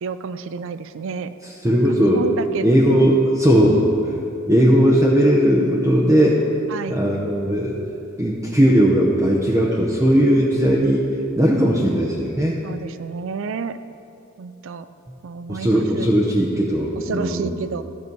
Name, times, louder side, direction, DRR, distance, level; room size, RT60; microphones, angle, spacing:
voice 1, 0.0-1.3 1.6-3.1 3.5-3.7 6.7-7.0 12.6-13.8 14.4-14.9 15.2-16.1 17.0-17.8, right 5 dB, 65° right, 12 dB, 0.4 m, -30 dB
voice 2, 1.6-2.2 2.6-3.8 4.5-6.4 6.9-7.8 8.2-11.0 11.4-12.6 15.5-17.6, equal, 15° right, -5 dB, 0.8 m, -17 dB
13.5 x 6.2 x 5.4 m, 2.7 s
head